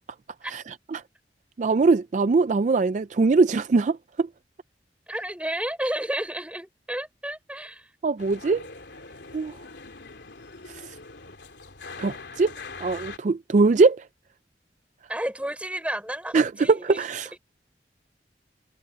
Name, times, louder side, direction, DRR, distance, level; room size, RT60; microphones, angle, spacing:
voice 1, 1.6-4.3 8.0-8.6 9.3-9.5 12.0-12.5 12.8-14.0 16.3-17.4, right 4 dB, 45° right, 0.4 m, -21 dB
voice 2, 5.1-7.9 15.1-17.0, right 1 dB, 5° right, 6.1 m, -31 dB
sound 1, 8.2-13.2, left 4 dB, 80° left, 2.9 m, -42 dB
head